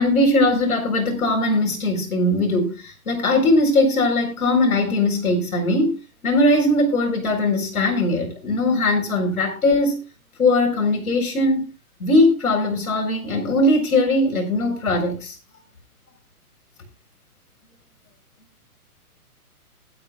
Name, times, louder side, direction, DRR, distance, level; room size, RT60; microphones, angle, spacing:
voice 1, 0.0-6.0 6.2-10.0 10.4-11.7 12.0-15.3, left 2 dB, 70° left, 1 dB, 4.5 m, -20 dB
22.0 x 8.8 x 2.4 m, 0.30 s
hypercardioid pair, 165°, 45 cm